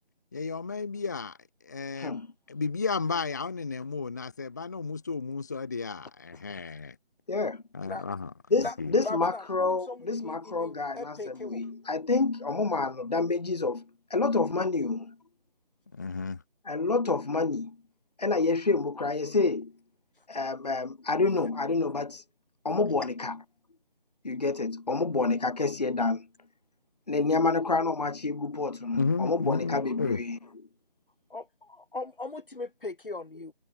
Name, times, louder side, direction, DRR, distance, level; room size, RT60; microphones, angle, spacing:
voice 1, 0.3-1.4 1.6-7.0 7.7-8.3 8.8-8.9 15.9-16.4 28.9-30.2, left 4 dB, 20° left, 1.1 m, -32 dB
voice 2, 1.9-2.3 7.3-7.6 8.5-13.8 14.1-15.1 16.7-17.8 18.2-19.7 20.3-22.2 22.6-23.4 24.2-26.3 27.1-30.4, left 3 dB, 45° left, 0.6 m, -28 dB
voice 3, 9.0-11.6 31.3-33.5, left 3 dB, 65° left, 2.5 m, -39 dB
figure-of-eight pair, 165°, 29 cm